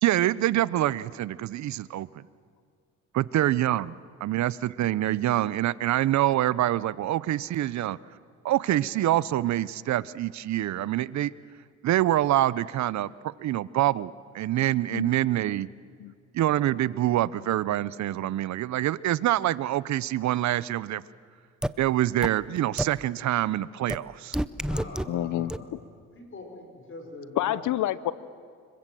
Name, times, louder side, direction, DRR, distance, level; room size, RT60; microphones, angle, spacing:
voice 1, 0.0-2.2 3.1-8.0 8.4-11.3 11.8-13.1 13.4-15.7 16.3-21.0 21.8-24.3, right 13 dB, 65° right, 19 dB, 0.7 m, -26 dB
sound 1, 21.6-21.7 22.2-22.3 22.8-22.9 23.9-24.0 24.3-25.0 25.5-25.6, equal, 5° right, 0.6 m, -27 dB
voice 2, 24.5-25.8 26.1-27.6, left 2 dB, 45° left, 3 dB, 5.1 m, -43 dB
voice 3, 25.1-25.8 27.4-28.1, left 13 dB, 80° left, 17 dB, 0.9 m, -28 dB
25.5 x 23.5 x 7.6 m, 2.1 s
cardioid pair, 90°, 30 cm